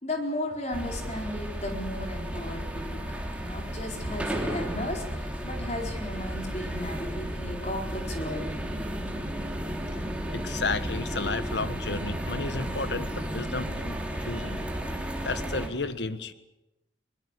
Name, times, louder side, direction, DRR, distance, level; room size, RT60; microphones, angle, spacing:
voice 1, 0.0-8.6, left 1 dB, 35° left, 2 dB, 4.4 m, -35 dB
sound 1, 0.7-15.7, equal, 5° right, 3.0 m, -33 dB
voice 2, 10.3-14.7 15.2-16.3, left 3 dB, 70° left, 12 dB, 1.5 m, -32 dB
23.0 x 20.5 x 8.2 m, 0.97 s
head